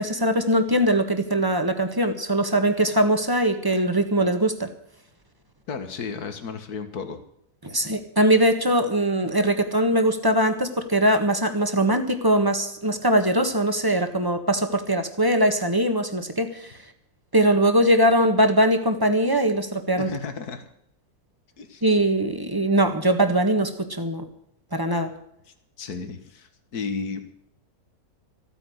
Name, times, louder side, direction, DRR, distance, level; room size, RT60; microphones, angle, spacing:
voice 1, 0.0-4.7 7.6-16.7 17.3-20.1 21.8-24.2 24.7-25.1, right 1 dB, 15° right, 7 dB, 1.5 m, -21 dB
voice 2, 5.7-7.2 20.0-20.6 21.6-21.8 25.8-27.2, left 5 dB, 75° left, 8 dB, 2.1 m, -33 dB
15.0 x 9.4 x 8.1 m, 0.72 s
omnidirectional pair, 1.6 m